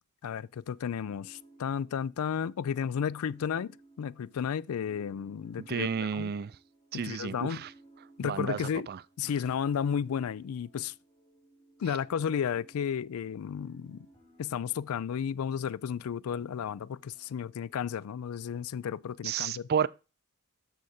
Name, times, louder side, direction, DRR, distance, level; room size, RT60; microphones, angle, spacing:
voice 1, 0.2-6.3 7.0-7.6 8.2-8.9 9.2-10.9 11.8-14.0 14.4-19.7, left 7 dB, 75° left, 0.4 m, -33 dB
sound 1, 1.0-18.5, right 2 dB, 20° left, 2.8 m, -59 dB
voice 2, 5.6-6.6 6.9-7.7 8.2-9.0 19.2-19.9, right 7 dB, 45° right, 0.4 m, -32 dB
13.0 x 4.8 x 4.2 m
head